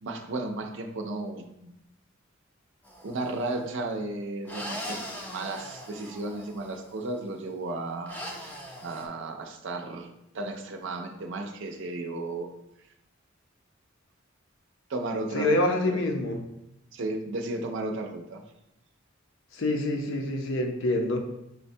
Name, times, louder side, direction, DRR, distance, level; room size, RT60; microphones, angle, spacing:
voice 1, 0.0-1.7 3.0-8.5 8.8-10.1 10.3-12.5 14.9-16.0 16.9-18.4, right 2 dB, 65° right, 4 dB, 0.5 m, -34 dB
sound 1, 2.8-3.4 4.4-6.9 8.1-9.1, equal, 10° left, 0.5 m, -40 dB
voice 2, 15.3-16.4 19.5-21.2, left 1 dB, 70° left, 3 dB, 0.6 m, -26 dB
6.3 x 2.2 x 2.6 m, 0.86 s
head